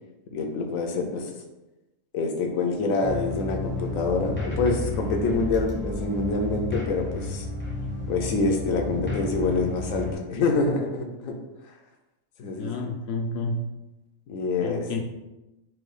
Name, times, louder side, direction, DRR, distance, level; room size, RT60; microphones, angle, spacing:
voice 1, 0.3-1.3 2.1-7.5 8.1-11.4 12.4-12.9 14.3-14.9, left 3 dB, 75° left, 3 dB, 1.1 m, -26 dB
sound 1, 3.0-10.1, left 2 dB, 10° left, 0.6 m, -32 dB
voice 2, 12.6-13.6 14.6-15.0, left 3 dB, 60° left, 3 dB, 0.8 m, -30 dB
4.6 x 2.3 x 4.8 m, 1.0 s
omnidirectional pair, 1.4 m